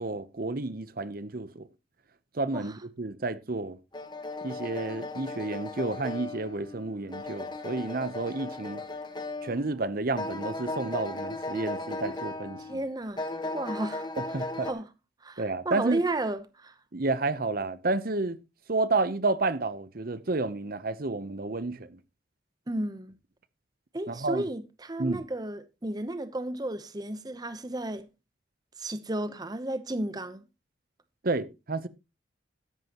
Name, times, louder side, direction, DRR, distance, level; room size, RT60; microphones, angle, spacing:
voice 1, 0.0-1.7 2.3-3.8 4.4-8.8 9.4-12.8 14.3-14.7 15.4-16.0 16.9-18.4 18.7-22.0 24.1-24.4 25.0-25.2 31.2-31.9, right 3 dB, 50° right, 0.8 m, -30 dB
sound 1, 3.9-9.8 10.2-12.8 13.2-14.7, left 2 dB, 25° left, 1.3 m, -36 dB
voice 2, 12.6-13.3 13.5-14.1 14.6-14.9 15.2-16.7 22.7-23.2 23.9-28.1 28.8-30.5, right 1 dB, 20° right, 0.8 m, -33 dB
13.5 x 11.0 x 3.0 m
head